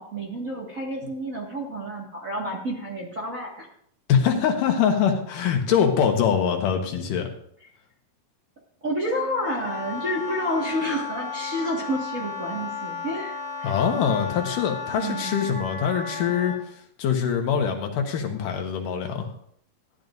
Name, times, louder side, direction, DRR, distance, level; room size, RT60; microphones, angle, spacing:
voice 1, 0.0-3.7 8.8-13.8 14.9-15.6, equal, 30° right, -4 dB, 1.8 m, -30 dB
voice 2, 4.1-7.3 13.6-16.5 17.0-19.3, left 7 dB, 85° left, 3 dB, 2.8 m, -23 dB
Wind instrument woodwind instrument, 9.0-16.6, left 5 dB, 20° left, 2.8 m, -34 dB
15.0 x 10.5 x 2.6 m, 0.67 s
omnidirectional pair, 3.7 m